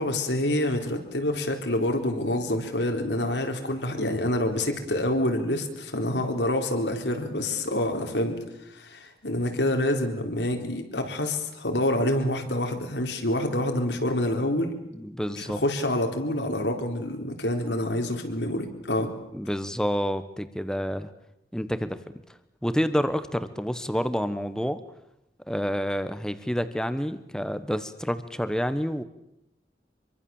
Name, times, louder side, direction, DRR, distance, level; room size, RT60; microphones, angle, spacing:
voice 1, 0.0-8.4 8.7-14.7 15.3-19.1, left 1 dB, 85° left, 4 dB, 4.1 m, -27 dB
voice 2, 14.9-15.6 19.3-21.1 21.5-22.0 22.6-24.8 25.5-29.0, equal, 5° left, 11 dB, 1.3 m, -28 dB
26.0 x 23.5 x 7.3 m, 0.86 s
head